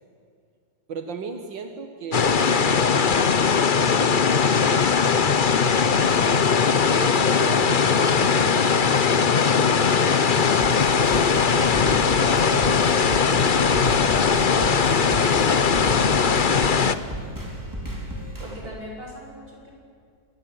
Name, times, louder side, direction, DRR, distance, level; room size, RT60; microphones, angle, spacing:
voice 1, 0.9-3.0 4.8-5.6 6.4-9.4 11.1-14.1 14.5-16.5 16.8-17.1 18.4-18.7, right 5 dB, 80° right, 6 dB, 2.2 m, -37 dB
sound 1, 2.1-16.9, left 6 dB, 40° left, 0.8 m, -20 dB
sound 2, 10.4-18.6, equal, 10° right, 5.0 m, -34 dB
voice 2, 10.9-11.8 18.4-19.7, equal, 30° right, -1 dB, 7.5 m, -40 dB
26.5 x 22.0 x 9.2 m, 2.2 s
omnidirectional pair, 2.0 m